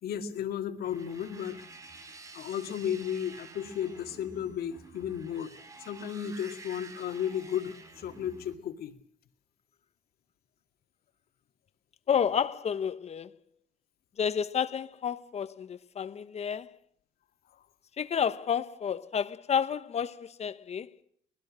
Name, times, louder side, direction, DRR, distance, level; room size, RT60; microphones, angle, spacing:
voice 1, 0.0-1.6 2.3-5.5 5.8-8.9 17.5-17.6, left 9 dB, 65° left, 2.2 m, -34 dB
sound 1, 0.8-8.6, right 3 dB, 20° right, 5.8 m, -50 dB
voice 2, 12.1-13.3 14.2-16.8 18.0-20.9, left 7 dB, 40° left, 1.1 m, -30 dB
24.5 x 20.0 x 6.3 m
cardioid pair, 110°, 17 cm